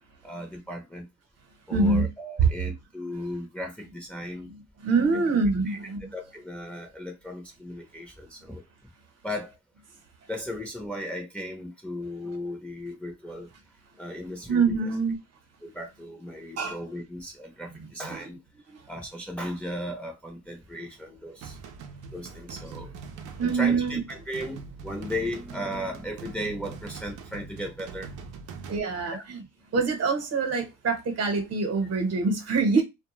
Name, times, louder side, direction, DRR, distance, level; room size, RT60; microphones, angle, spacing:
voice 1, 0.2-1.1 1.7-4.5 5.7-5.8 6.1-8.6 9.2-9.6 10.3-13.5 14.0-14.6 15.6-18.4 18.9-21.6 22.1-22.9 23.4-28.1 29.1-29.2, equal, 5° left, 0.7 m, -36 dB
voice 2, 1.7-2.1 2.4-2.5 4.4-6.1 14.5-15.2 16.6-16.8 17.7-18.3 18.7-18.9 23.4-24.0 28.7-29.4 29.7-32.8, right 4 dB, 55° right, 1.0 m, -25 dB
sound 1, 21.4-28.8, right 5 dB, 85° right, 0.6 m, -43 dB
2.2 x 2.2 x 3.0 m
cardioid pair, 90°, 30 cm